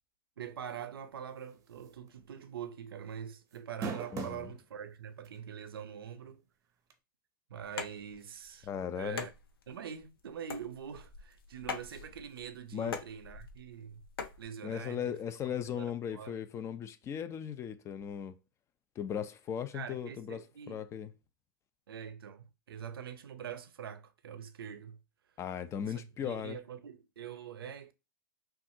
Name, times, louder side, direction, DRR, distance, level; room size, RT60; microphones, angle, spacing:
voice 1, 0.4-6.4 7.5-9.3 9.7-14.1 14.4-15.2 15.6-16.4 19.7-20.8 21.9-25.0 25.8-27.9, right 8 dB, 80° right, 0.6 m, -44 dB
sound 1, 1.9-2.1 2.4-2.5 3.5-4.5 5.2-5.3 6.9-7.0, right 5 dB, 25° right, 0.7 m, -38 dB
voice 2, 4.1-4.5 8.7-9.3 12.7-13.0 14.6-18.4 19.0-20.4 20.7-21.1 25.4-26.6, left 8 dB, 25° left, 0.5 m, -37 dB
sound 2, 7.6-14.4, left 5 dB, 85° left, 0.9 m, -44 dB
5.7 x 2.4 x 2.7 m
hypercardioid pair, 120°, 12 cm